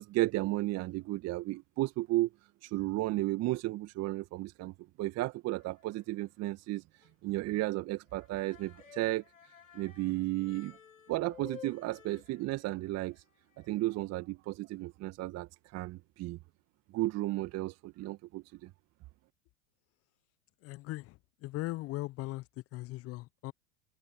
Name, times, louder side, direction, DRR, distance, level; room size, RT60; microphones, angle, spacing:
voice 1, 0.0-2.3 2.6-6.8 7.2-9.2 9.7-10.8 11.1-13.2 13.6-16.4 16.9-18.7, right 18 dB, 35° right, 2.1 m, -34 dB
sound 1, 5.5-6.2 6.5-6.6 7.0-7.1 7.5-7.6 8.0-14.0, left 8 dB, 75° left, 5.6 m, -54 dB
voice 2, 20.6-22.4 22.7-23.5, left 18 dB, 35° left, 1.1 m, -39 dB
figure-of-eight pair, 90°, 42 cm